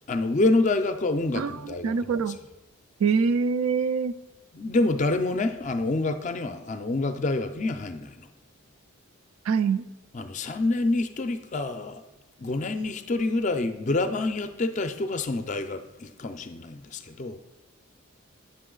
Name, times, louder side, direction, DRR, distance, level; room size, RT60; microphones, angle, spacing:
voice 1, 0.1-2.4 4.5-8.3 10.1-12.0 12.4-17.4, left 2 dB, 35° left, 9 dB, 0.4 m, -27 dB
voice 2, 1.8-2.4 3.0-4.1 9.5-9.8, right 5 dB, 75° right, 13 dB, 0.4 m, -24 dB
8.6 x 6.2 x 3.8 m, 1.0 s
head